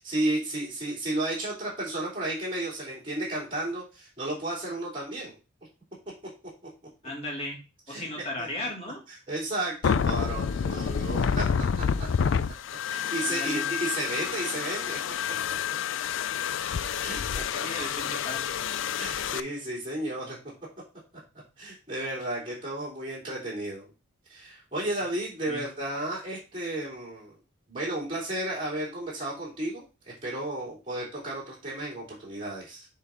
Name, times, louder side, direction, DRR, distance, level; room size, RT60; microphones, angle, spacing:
voice 1, 0.0-5.4 7.9-8.0 8.4-8.5 9.1-11.4 12.0-12.1 12.9-15.0 15.2-15.5 17.0-17.9 19.0-20.4 21.6-23.9 24.3-27.3 27.7-32.9, right 1 dB, 25° right, -6 dB, 2.9 m, -33 dB
voice 2, 7.0-7.6 7.9-9.0 13.3-13.7 17.6-18.6 25.5-25.6, left 1 dB, 30° left, -1 dB, 2.2 m, -35 dB
sound 1, 9.8-19.4, left 7 dB, 60° left, 0.4 m, -29 dB
7.1 x 3.8 x 4.9 m, 0.30 s
head